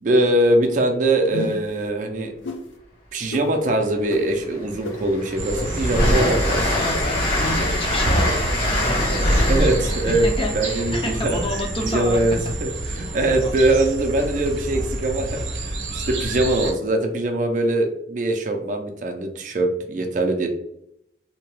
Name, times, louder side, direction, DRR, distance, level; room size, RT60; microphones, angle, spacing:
voice 1, 0.0-2.3 3.1-6.7 9.5-10.3 10.5-11.4 11.8-20.5, right 1 dB, 45° right, 4 dB, 0.4 m, -22 dB
sound 1, 1.3-1.7 2.4-2.6 3.3-3.4 4.1-4.2 4.8-4.9 5.5-5.6 6.2-6.3 6.9-7.0 7.6-7.7 8.3-8.4, left 2 dB, 90° left, 0.5 m, -30 dB
Train, 3.8-3.9 4.3-12.1, left 1 dB, 55° left, 1.2 m, -24 dB
sound 2, 5.4-16.7, right 2 dB, 90° right, 0.6 m, -29 dB
voice 2, 6.7-9.7 10.1-12.2 12.7-13.5, left 1 dB, 30° left, 1 dB, 0.5 m, -30 dB
2.8 x 2.2 x 3.0 m, 0.77 s
head